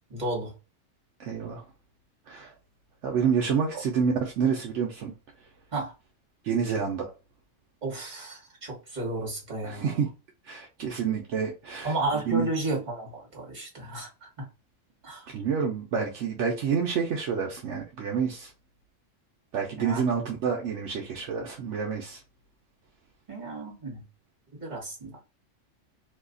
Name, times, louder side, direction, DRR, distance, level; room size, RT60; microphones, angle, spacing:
voice 1, 0.1-0.5 3.7-3.8 5.7-5.9 7.8-10.0 11.8-14.5 15.0-15.3 19.8-20.1 23.3-24.0 24.5-25.2, right 2 dB, 35° right, 1.3 m, -33 dB
voice 2, 1.2-1.6 2.3-2.5 3.0-5.1 6.4-7.1 9.6-10.1 10.5-12.5 15.3-18.5 19.5-22.2, right 6 dB, 70° right, 0.9 m, -28 dB
2.8 x 2.3 x 3.7 m
omnidirectional pair, 1.3 m